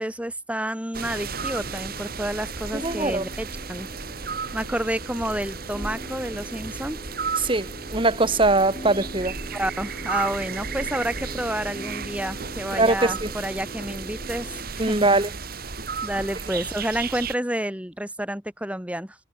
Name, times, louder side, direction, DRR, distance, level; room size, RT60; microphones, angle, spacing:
voice 1, 0.0-3.9 4.5-7.0 9.5-15.1 16.0-19.2, right 1 dB, 5° right, 3.7 m, -30 dB
sound 1, 0.9-17.3, right 5 dB, 55° right, 2.5 m, -34 dB
sound 2, 1.4-14.6, equal, 25° left, 7.1 m, -43 dB
voice 2, 2.7-3.3 7.4-9.3 12.7-13.3 14.8-15.3, right 2 dB, 30° right, 3.5 m, -22 dB
head